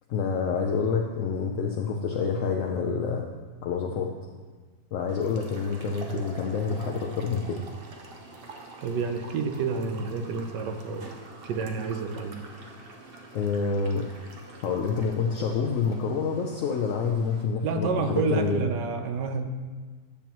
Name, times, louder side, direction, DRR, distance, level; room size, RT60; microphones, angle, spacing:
voice 1, 0.1-3.3 3.6-4.1 4.9-7.6 13.3-14.1 14.6-18.7, left 5 dB, 65° left, 1 dB, 0.8 m, -27 dB
sound 1, 5.1-17.4, right 2 dB, 50° right, 0.7 m, -46 dB
voice 2, 8.8-11.1 11.4-12.4 17.6-19.5, right 4 dB, 80° right, 7 dB, 1.3 m, -29 dB
10.0 x 7.1 x 3.0 m, 1.4 s
omnidirectional pair, 1.9 m